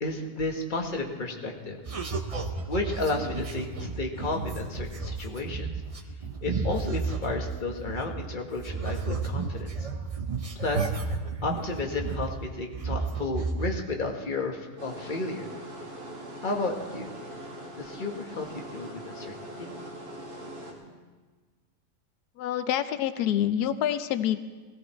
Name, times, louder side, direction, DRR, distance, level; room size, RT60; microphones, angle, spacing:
voice 1, 0.0-1.8 2.7-5.7 6.4-9.9 10.6-15.5 16.4-17.1 17.8-19.7, left 2 dB, 30° left, 1 dB, 1.7 m, -32 dB
sound 1, 1.9-8.3 8.6-12.5 12.7-13.7, right 4 dB, 30° right, 0.7 m, -32 dB
sound 2, 14.8-20.7, right 1 dB, 80° right, 3.1 m, -42 dB
voice 2, 22.4-24.4, left 10 dB, 90° left, 11 dB, 1.2 m, -27 dB
17.0 x 17.0 x 4.5 m, 1.4 s
omnidirectional pair, 1.6 m